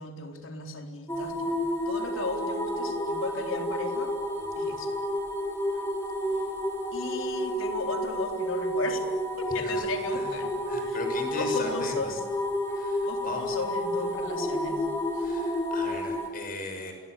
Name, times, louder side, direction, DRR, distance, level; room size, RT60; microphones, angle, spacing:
voice 1, 0.0-4.1 4.6-4.9 6.9-9.1 9.4-10.5 10.8-11.0 11.3-12.2 13.0-14.9 15.1-15.3, left 3 dB, 85° left, 4 dB, 4.1 m, -36 dB
sound 1, 1.1-16.3, equal, 15° left, 5.4 m, -30 dB
voice 2, 9.6-10.4 10.7-12.1 12.7-13.6 15.2-16.9, left 2 dB, 45° left, 5 dB, 6.5 m, -38 dB
28.0 x 22.5 x 8.4 m, 1.2 s
head